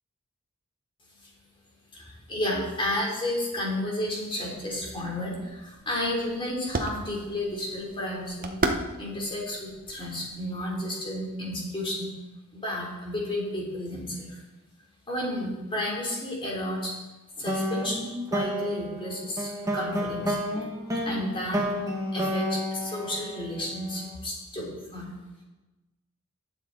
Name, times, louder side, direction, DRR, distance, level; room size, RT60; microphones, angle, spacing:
voice 1, 1.9-8.6 9.0-12.1 12.5-14.4 15.1-16.9 17.4-20.7 21.0-21.6 22.1-25.1, left 1 dB, 25° left, -3 dB, 3.4 m, -32 dB
sound 1, 4.6-10.9, right 2 dB, 45° right, 1.0 m, -36 dB
sound 2, 17.5-23.9, equal, 15° right, 1.9 m, -30 dB
19.5 x 7.1 x 4.1 m, 1.1 s
head